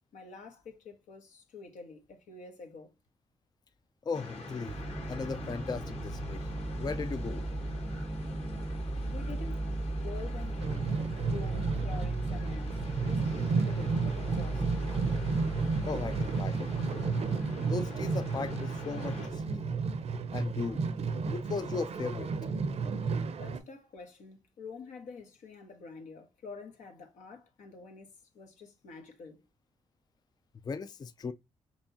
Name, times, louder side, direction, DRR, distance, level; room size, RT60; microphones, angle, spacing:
voice 1, 0.1-2.9 9.0-10.9 11.2-14.9 23.4-29.4, left 4 dB, 85° left, 1.1 m, -47 dB
voice 2, 4.0-4.8 5.1-6.5 6.8-7.5 15.8-16.7 17.6-19.7 20.3-20.8 21.3-22.3 30.6-31.3, left 4 dB, 35° left, 0.4 m, -37 dB
sound 1, 4.1-19.3, left 2 dB, 55° left, 1.4 m, -44 dB
sound 2, 4.7-16.8, right 2 dB, 20° right, 0.5 m, -37 dB
sound 3, 10.3-23.6, right 4 dB, 60° right, 0.6 m, -32 dB
4.6 x 2.8 x 2.7 m
cardioid pair, 55°, 12 cm